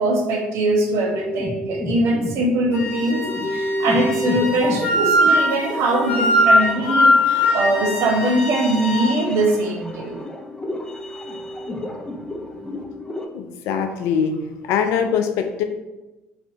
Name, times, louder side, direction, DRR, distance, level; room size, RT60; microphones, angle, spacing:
voice 1, 0.0-10.3, right 2 dB, 65° right, 3 dB, 0.6 m, -22 dB
sound 1, 1.1-13.3, left 1 dB, 15° left, 0.5 m, -31 dB
Wind instrument woodwind instrument, 2.7-9.1, left 1 dB, 50° left, 0.8 m, -20 dB
voice 2, 13.3-14.3 14.7-15.6, left 7 dB, 70° left, 6 dB, 0.4 m, -22 dB
3.2 x 2.6 x 2.7 m, 1.1 s
hypercardioid pair, 60°, 5 cm